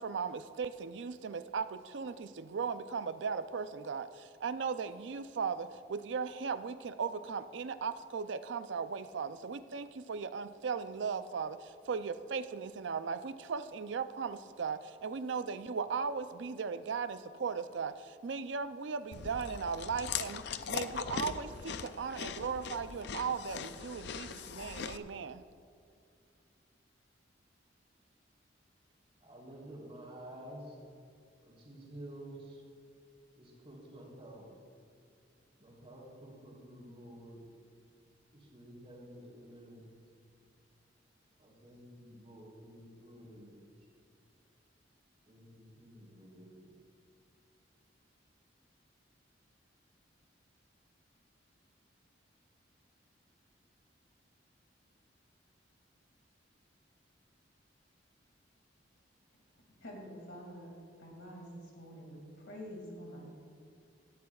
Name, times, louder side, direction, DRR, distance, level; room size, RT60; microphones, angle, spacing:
voice 1, 0.0-25.4, right 5 dB, 75° right, 12 dB, 0.5 m, -37 dB
Chewing mastication, 19.1-25.0, left 6 dB, 65° left, 0.5 m, -40 dB
voice 2, 29.2-30.8 31.4-32.6 33.4-34.5 35.6-37.4 38.3-39.9 41.4-43.9 45.3-46.7, right 1 dB, 35° right, -3 dB, 3.2 m, -51 dB
voice 3, 59.8-61.5 61.8-63.3, equal, 85° left, -1 dB, 2.3 m, -47 dB
17.5 x 12.0 x 2.4 m, 2.3 s
head